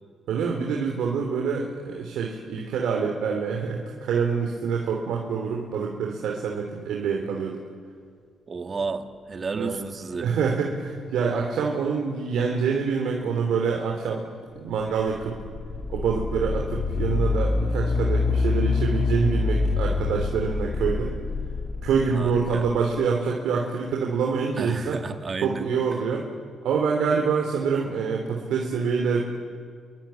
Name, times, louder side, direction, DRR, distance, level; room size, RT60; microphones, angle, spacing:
voice 1, 0.3-7.6 9.6-9.8 10.2-14.2 14.5-15.3 15.9-21.1 21.8-25.0 25.4-26.3 26.6-29.2, right 5 dB, 80° right, 0 dB, 3.2 m, -26 dB
voice 2, 8.5-10.3 22.1-22.7 24.6-25.7, right 4 dB, 35° right, 6 dB, 2.2 m, -32 dB
sound 1, 15.0-22.8, left 3 dB, 40° left, 3.3 m, -26 dB
27.0 x 24.0 x 9.0 m, 2.1 s
cardioid pair, 90°, 0 cm